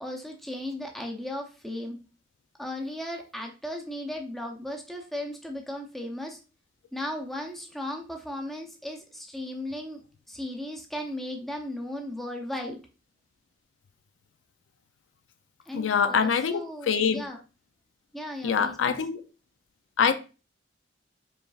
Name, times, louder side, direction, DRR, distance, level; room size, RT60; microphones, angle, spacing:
voice 1, 0.0-2.0 2.6-6.4 6.9-12.8 15.7-17.4 18.1-19.0, left 1 dB, ahead, 0.6 m, -36 dB
voice 2, 15.7-16.6 16.9-17.2 18.4-19.2 20.0-20.1, left 6 dB, 90° left, 0.4 m, -24 dB
4.8 x 3.2 x 2.4 m
head